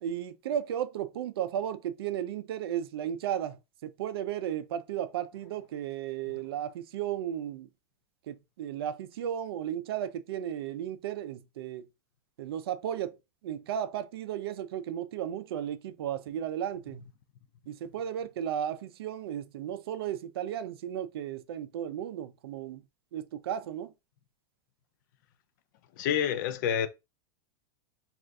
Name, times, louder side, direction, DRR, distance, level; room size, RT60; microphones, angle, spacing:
voice 1, 0.0-7.7 8.3-11.9 12.4-13.2 13.4-17.0 17.7-22.8 23.1-23.9, right 10 dB, 75° right, 0.4 m, -34 dB
voice 2, 26.0-26.9, left 9 dB, 50° left, 0.4 m, -28 dB
2.5 x 2.4 x 3.3 m
supercardioid pair, 165°, 13 cm